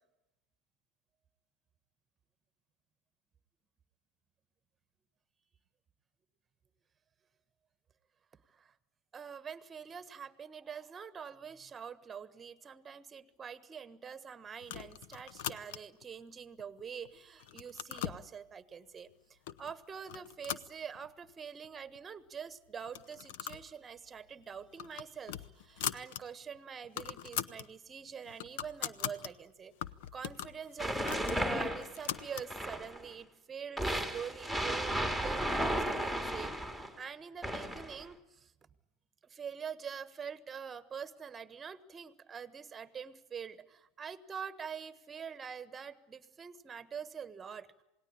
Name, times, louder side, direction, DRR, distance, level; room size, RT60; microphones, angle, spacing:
voice 1, 9.1-19.1 19.6-29.7 30.1-38.5 39.2-47.7, right 7 dB, 20° right, 16 dB, 1.4 m, -45 dB
sound 1, 14.6-16.0 16.6-17.1 17.4-18.2 19.0-19.1 19.5-19.7 20.1-21.3 21.6-21.7 22.0-22.1 22.8-23.7 24.0-24.2 24.6-26.2 26.6-26.7 26.8-27.7 28.1-29.3 29.8-32.5, left 11 dB, 55° left, 0.8 m, -41 dB
sound 2, 30.8-33.0 33.8-36.9 37.4-38.0, equal, 10° left, 2.5 m, -34 dB
28.0 x 19.0 x 8.6 m, 0.96 s
figure-of-eight pair, 85°, 0 cm